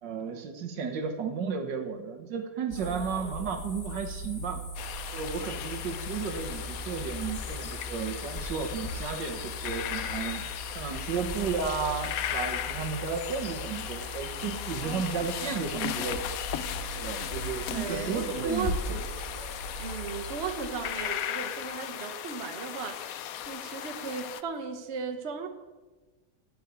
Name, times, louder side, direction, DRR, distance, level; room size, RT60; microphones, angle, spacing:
voice 1, 0.0-4.6 5.1-10.5 10.8-16.3 16.9-19.0, right 6 dB, 80° right, 5 dB, 1.8 m, -33 dB
sound 1, 2.7-21.1, left 1 dB, 35° left, 2.3 m, -39 dB
voice 2, 2.7-3.5 14.8-15.1 17.7-19.3 19.8-25.5, right 5 dB, 45° right, 6 dB, 1.2 m, -37 dB
sound 2, 4.8-24.4, left 10 dB, 70° left, 0.9 m, -37 dB
14.5 x 4.8 x 8.3 m, 1.3 s
omnidirectional pair, 1.9 m